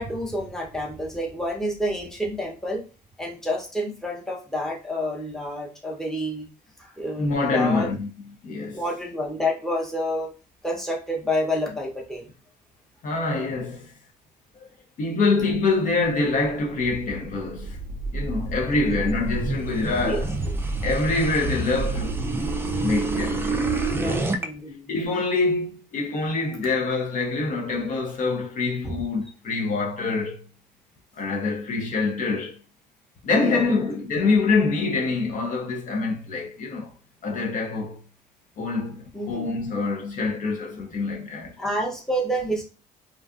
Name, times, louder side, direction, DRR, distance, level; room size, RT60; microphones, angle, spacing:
voice 1, 0.0-2.8 3.2-6.5 6.8-7.9 8.7-10.3 10.6-12.3 20.0-20.2 24.3-24.9 28.8-28.9 33.4-33.8 39.1-39.5 41.6-42.6, equal, 5° left, 0.7 m, -29 dB
voice 2, 7.2-8.1 8.4-8.8 13.0-13.9 14.5-14.7 15.0-17.8 18.1-20.4 20.8-22.2 22.8-23.6 24.0-24.4 24.9-30.5 31.1-32.6 33.2-36.9 37.2-38.0 38.6-41.5, left 3 dB, 50° left, 0.6 m, -25 dB
sound 1, 16.6-24.5, right 2 dB, 15° right, 0.3 m, -28 dB
2.5 x 2.4 x 2.4 m
cardioid pair, 110°, 17 cm